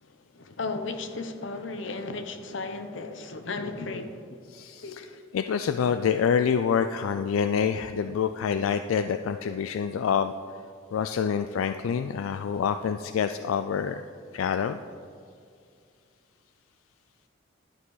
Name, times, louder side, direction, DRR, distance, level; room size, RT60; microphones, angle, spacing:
voice 1, 0.0-4.4 4.8-4.9, left 3 dB, 70° left, 0.8 m, -35 dB
voice 2, 4.5-5.1 5.3-10.3 10.9-14.0 14.3-14.8, left 7 dB, 90° left, 0.3 m, -26 dB
11.5 x 8.3 x 3.9 m
head